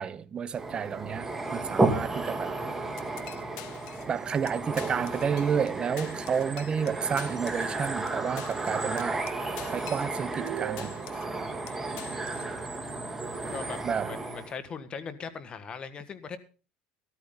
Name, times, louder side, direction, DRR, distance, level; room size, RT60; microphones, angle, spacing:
voice 1, 0.0-2.5 4.1-9.2 9.7-11.1 13.8-14.1, right 7 dB, 30° right, 0.9 m, -30 dB
sound 1, 0.6-14.5, right 2 dB, 10° right, 2.3 m, -33 dB
sound 2, 3.0-4.2 4.5-4.6 4.8-5.7 6.0-10.5 10.8-11.4 11.7-12.5, left 15 dB, 75° left, 1.1 m, -46 dB
sound 3, 10.3-11.4, right 16 dB, 75° right, 1.6 m, -38 dB
voice 2, 11.7-12.3 13.5-13.8 14.1-16.4, left 5 dB, 30° left, 1.7 m, -40 dB
14.0 x 13.0 x 3.9 m
supercardioid pair, 125°, 3 cm